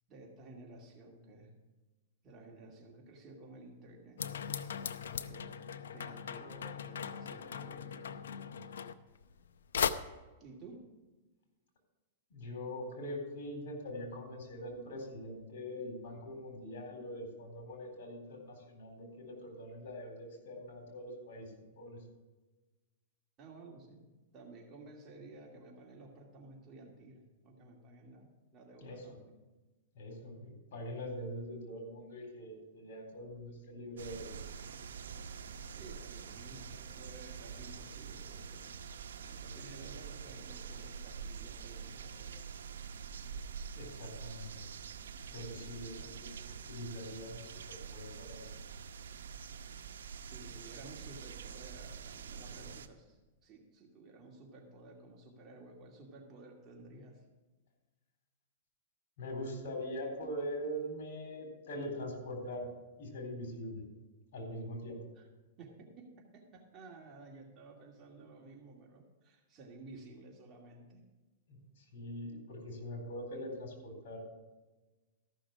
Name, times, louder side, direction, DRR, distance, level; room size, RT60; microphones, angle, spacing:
voice 1, 0.1-1.5 2.2-4.2 5.3-5.6 5.9-8.3 10.4-10.8 23.4-24.1 24.3-29.4 35.7-38.7 39.1-42.5 46.0-46.2 50.3-57.2 65.2-65.3 65.6-71.0, right 2 dB, 30° right, -1 dB, 2.4 m, -54 dB
sound 1, 4.2-9.5 9.7-9.9, left 7 dB, 90° left, 0.6 m, -38 dB
voice 2, 12.3-21.5 21.8-22.0 28.8-29.1 29.9-34.3 43.7-44.6 45.3-48.5 59.2-62.7 63.0-63.8 64.3-65.0 71.5-74.2, equal, 65° left, 3 dB, 4.0 m, -43 dB
sound 2, 34.0-52.9, right 6 dB, 90° right, 0.8 m, -46 dB
14.0 x 6.3 x 6.0 m, 1.2 s
hypercardioid pair, 140°, 0 cm